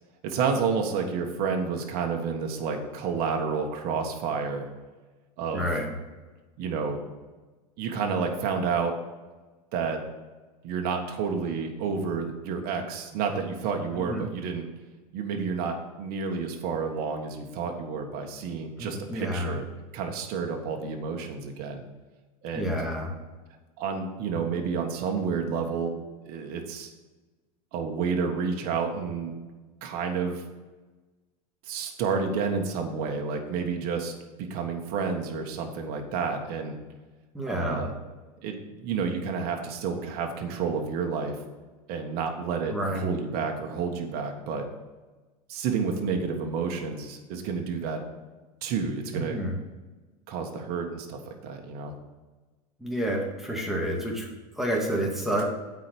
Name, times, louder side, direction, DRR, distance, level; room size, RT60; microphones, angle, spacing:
voice 1, 0.2-4.7 5.4-5.7 6.6-7.0 7.8-9.0 9.7-10.0 10.6-14.7 15.1-19.7 19.9-21.8 22.4-22.7 23.8-25.9 26.2-26.9 27.7-29.4 29.8-30.4 31.7-34.1 34.4-36.7 37.5-37.9 38.4-41.4 41.9-44.7 45.5-48.0 48.6-49.4 50.3-51.9, right 5 dB, 55° right, 3 dB, 1.5 m, -30 dB
voice 2, 5.5-5.9 14.0-14.3 18.8-19.5 22.5-23.1 37.3-37.8 42.7-43.1 49.1-49.6 52.8-54.3 54.6-55.5, equal, ahead, -2 dB, 2.2 m, -29 dB
8.3 x 4.9 x 7.0 m, 1.2 s
hypercardioid pair, 95°, 19 cm